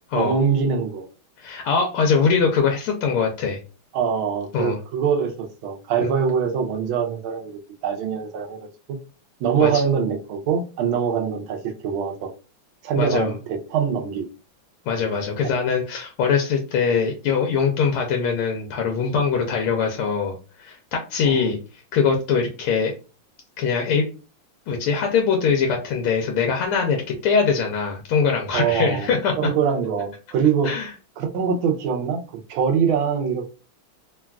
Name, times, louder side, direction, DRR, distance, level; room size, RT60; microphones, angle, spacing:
voice 1, 0.1-1.0 3.9-9.0 9.4-12.3 12.8-14.2 15.4-15.6 21.2-21.4 28.5-29.1 29.4-30.7 31.2-32.2 32.5-33.5, right 7 dB, 80° right, 1.4 m, -23 dB
voice 2, 1.4-3.6 4.5-4.8 6.0-6.1 9.6-9.8 13.0-13.3 14.9-21.6 21.9-22.9 23.6-24.1 24.7-29.5 30.6-30.9, left 5 dB, 90° left, 1.5 m, -22 dB
3.8 x 2.3 x 2.2 m
omnidirectional pair, 2.3 m